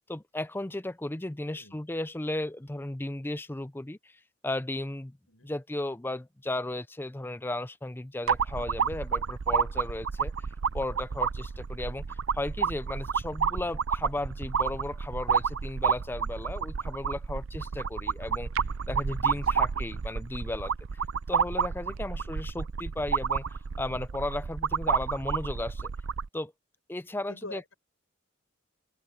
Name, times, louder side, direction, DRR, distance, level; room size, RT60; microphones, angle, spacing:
voice 1, 0.1-5.2 5.4-10.3 10.7-20.7 21.3-23.4 23.8-25.9 26.3-26.5 26.9-27.7, left 1 dB, 10° left, 0.5 m, -35 dB
voice 2, 1.4-1.8 5.3-5.5 19.3-19.6 22.0-22.3 27.3-27.7, left 2 dB, 90° left, 7.3 m, -46 dB
sound 1, 8.3-26.3, right 6 dB, 75° right, 0.5 m, -30 dB
open air
head